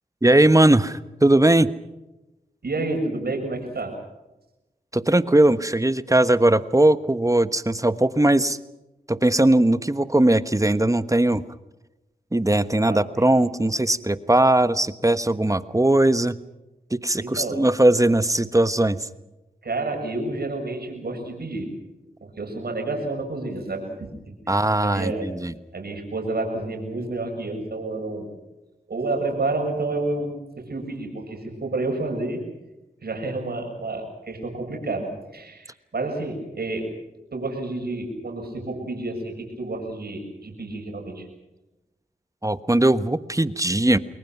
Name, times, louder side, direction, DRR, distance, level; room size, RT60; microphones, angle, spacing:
voice 1, 0.2-1.7 4.9-8.6 9.1-11.4 12.3-16.4 16.9-19.0 24.5-25.5 42.4-44.0, right 1 dB, 20° right, 13 dB, 1.2 m, -19 dB
voice 2, 2.6-4.0 12.9-13.3 17.2-17.6 19.6-21.7 22.2-24.1 24.8-25.2 25.7-28.3 28.9-32.4 33.0-36.9 37.3-41.3, right 2 dB, 80° right, 2 dB, 7.3 m, -29 dB
29.0 x 21.5 x 6.0 m, 0.99 s
cardioid pair, 50°, 16 cm